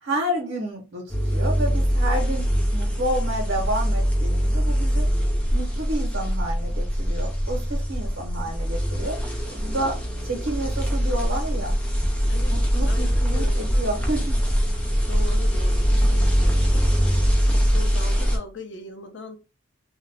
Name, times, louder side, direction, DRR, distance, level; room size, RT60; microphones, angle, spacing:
voice 1, 0.0-5.1 5.5-9.2 9.5-10.0 10.2-11.7 12.5-14.4, right 1 dB, 75° right, 0.8 m, -30 dB
sound 1, 1.1-18.4, equal, 5° left, 0.5 m, -22 dB
voice 2, 12.3-13.9 15.1-19.4, left 3 dB, 65° left, 0.6 m, -40 dB
2.4 x 2.1 x 3.2 m
head